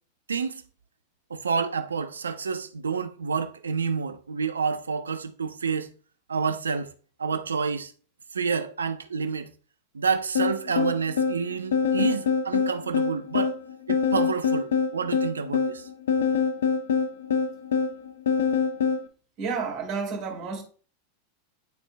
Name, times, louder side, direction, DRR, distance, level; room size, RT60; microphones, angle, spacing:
voice 1, 0.3-0.6 1.3-5.9 6.3-6.9 7.2-7.9 8.3-9.5 9.9-13.6 13.9-15.9, right 5 dB, 80° right, 0.6 m, -29 dB
sound 1, 10.4-19.1, left 6 dB, 70° left, 0.7 m, -25 dB
voice 2, 19.4-20.6, right 5 dB, 45° right, 2.6 m, -30 dB
11.5 x 4.4 x 2.2 m
figure-of-eight pair, 90°, 0 cm